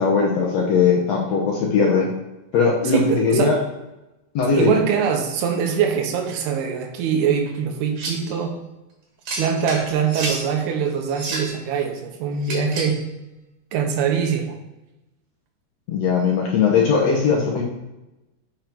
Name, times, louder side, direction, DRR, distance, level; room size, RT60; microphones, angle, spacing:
voice 1, 0.0-2.1 2.5-3.6 4.3-4.8 15.9-17.6, left 5 dB, 75° left, -2 dB, 1.5 m, -19 dB
voice 2, 2.8-3.6 4.5-8.6 9.3-13.0 13.7-14.5, right 7 dB, 85° right, 3 dB, 3.1 m, -23 dB
sound 1, 8.0-8.3 9.3-10.5 11.1-11.6 12.4-13.0, right 2 dB, 55° right, 2.4 m, -30 dB
7.4 x 5.7 x 4.5 m, 1.0 s
omnidirectional pair, 4.4 m